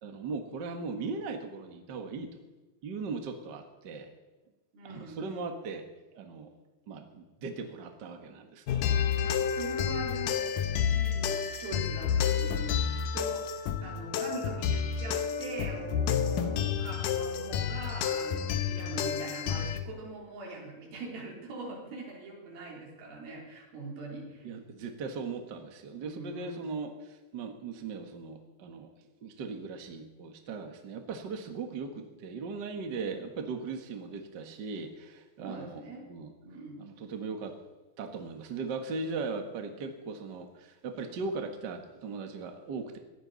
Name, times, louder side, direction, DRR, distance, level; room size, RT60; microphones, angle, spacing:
voice 1, 0.0-2.3 2.8-4.1 4.9-5.8 6.1-6.5 6.9-9.0 24.4-28.9 29.2-36.3 36.8-37.5 38.0-43.0, right 4 dB, 45° right, 5 dB, 1.4 m, -38 dB
voice 2, 4.7-5.7 9.2-10.6 10.9-12.9 13.1-24.5 26.0-26.6 33.0-33.2 35.4-36.0 36.4-36.8, right 2 dB, 90° right, -2 dB, 5.5 m, -42 dB
sound 1, 8.7-19.8, left 8 dB, 75° left, 2.4 m, -30 dB
19.0 x 16.0 x 4.1 m, 1.1 s
omnidirectional pair, 4.1 m